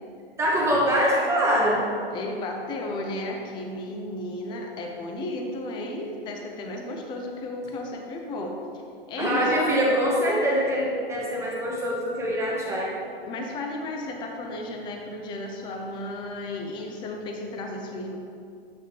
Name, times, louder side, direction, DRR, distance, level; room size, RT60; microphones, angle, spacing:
voice 1, 0.4-1.8 9.2-12.9, equal, 10° right, -4 dB, 1.4 m, -24 dB
voice 2, 2.1-8.6 9.1-9.9 13.3-18.2, left 2 dB, 15° left, 2 dB, 0.5 m, -33 dB
7.9 x 5.4 x 3.2 m, 2.3 s
figure-of-eight pair, 115°, 30 cm